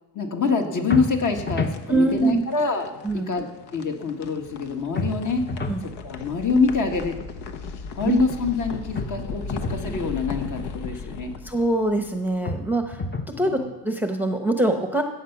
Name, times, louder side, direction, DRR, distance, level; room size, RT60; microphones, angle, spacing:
voice 1, 0.1-3.5 3.7-5.5 6.0-7.2 8.0-11.3 13.3-13.7, left 4 dB, 45° left, 4 dB, 1.8 m, -25 dB
sound 1, 0.8-12.9, left 5 dB, 65° left, 1.2 m, -37 dB
sound 2, 0.9-1.8 5.0-5.8 8.9-9.8 12.4-13.4, left 3 dB, 25° left, 1.0 m, -30 dB
voice 2, 1.9-2.4 3.0-3.3 5.6-5.9 8.1-8.2 11.4-13.0 13.4-13.6 13.8-15.0, right 2 dB, 5° right, 4 dB, 0.9 m, -23 dB
15.0 x 8.3 x 6.0 m, 1.0 s
cardioid pair, 130°, 43 cm